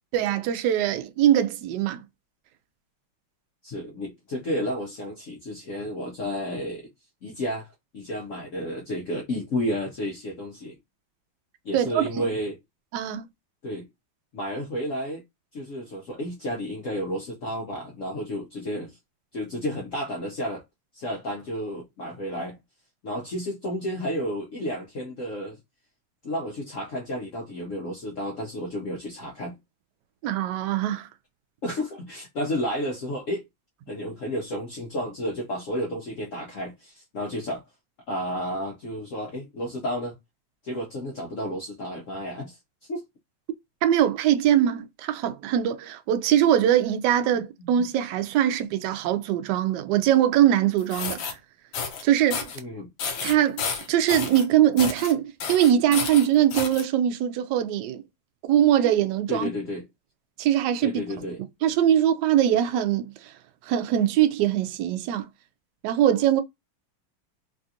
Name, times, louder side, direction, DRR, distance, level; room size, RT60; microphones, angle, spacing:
voice 1, 0.1-2.0 11.7-12.3 12.9-13.3 30.2-31.1 43.8-51.3 52.0-52.5 53.2-53.6 53.9-58.0 58.5-59.5 60.4-61.0 61.6-63.3 63.6-65.2 65.8-66.4, right 11 dB, 75° right, 1.0 m, -22 dB
voice 2, 3.6-6.9 7.2-10.8 11.6-12.6 13.6-13.9 14.3-15.2 15.5-19.0 19.3-20.6 20.9-22.6 23.0-25.6 26.2-29.6 31.6-33.4 33.9-37.6 38.1-40.2 40.6-42.6 42.9-43.0 47.3-47.7 52.5-52.9 59.3-59.8 60.8-61.4, equal, 85° left, 0.6 m, -31 dB
sound 1, 50.8-51.3 51.7-52.0 52.3-52.6 53.0-54.4 54.8-55.1 55.4-56.8, left 6 dB, 70° left, 1.4 m, -31 dB
3.4 x 2.4 x 2.6 m
omnidirectional pair, 2.3 m